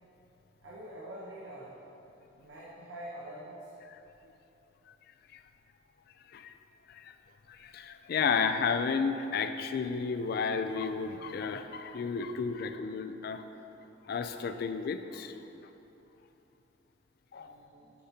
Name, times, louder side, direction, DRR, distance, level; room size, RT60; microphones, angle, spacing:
voice 1, 0.6-1.8 2.4-3.7 17.3-17.9, right 1 dB, 85° right, -6 dB, 0.9 m, -45 dB
voice 2, 7.5-13.4 14.1-15.4 17.3-17.6, left 5 dB, 55° left, 9 dB, 0.3 m, -32 dB
8.3 x 5.7 x 2.8 m, 3.0 s
head